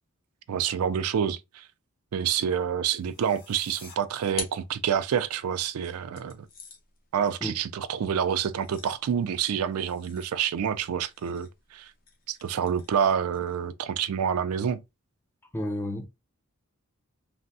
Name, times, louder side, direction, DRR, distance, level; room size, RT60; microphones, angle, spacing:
voice 1, 0.5-1.6 2.1-6.5 7.1-11.9 12.3-14.8, right 8 dB, 80° right, 0.4 m, -28 dB
sound 1, 2.9-3.9, left 4 dB, 80° left, 1.2 m, -50 dB
sound 2, 4.1-5.4 6.1-13.7, left 4 dB, 40° left, 0.7 m, -46 dB
voice 2, 15.5-16.1, left 1 dB, 10° left, 0.4 m, -31 dB
3.4 x 2.0 x 2.6 m
head